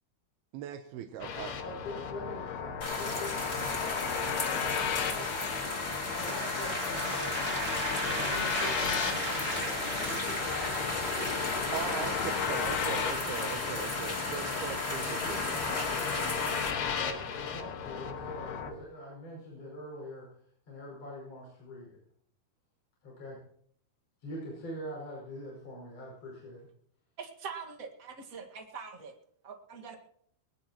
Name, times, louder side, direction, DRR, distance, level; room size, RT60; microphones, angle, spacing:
voice 1, 0.5-1.6 11.7-15.4, right 10 dB, 85° right, 6 dB, 2.8 m, -40 dB
sound 1, 1.2-18.7, left 7 dB, 85° left, 3.6 m, -35 dB
voice 2, 1.6-7.7 8.0-12.1 12.7-13.9 14.9-16.7 17.0-20.3 20.7-22.0 23.0-23.4 24.2-26.7, equal, 40° left, -4 dB, 6.8 m, -44 dB
sound 2, 2.8-16.7, left 2 dB, 20° left, 2.0 m, -35 dB
sound 3, 5.8-10.9, right 2 dB, 20° right, 2.3 m, -37 dB
voice 3, 27.2-29.1 29.4-30.0, right 5 dB, 40° right, 2 dB, 1.2 m, -43 dB
21.5 x 20.0 x 3.0 m, 0.65 s
omnidirectional pair, 4.4 m